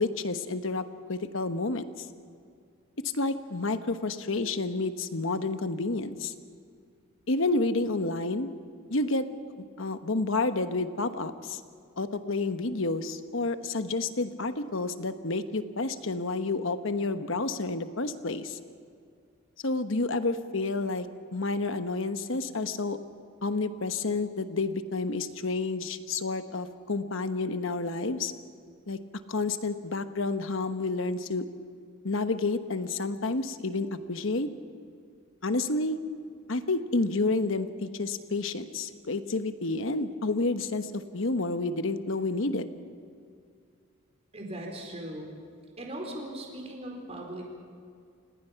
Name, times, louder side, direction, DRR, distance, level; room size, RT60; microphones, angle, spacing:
voice 1, 0.0-2.1 3.1-6.3 7.3-8.5 8.9-9.3 9.6-11.6 12.0-18.6 19.6-21.1 21.3-23.0 23.4-28.3 28.9-29.0 29.3-31.5 32.0-34.5 35.4-36.0 36.5-42.7, left 3 dB, 65° left, 10 dB, 1.1 m, -30 dB
voice 2, 44.3-45.3 45.8-47.6, right 1 dB, 30° right, 1 dB, 4.4 m, -39 dB
29.5 x 18.0 x 5.8 m, 2.3 s
head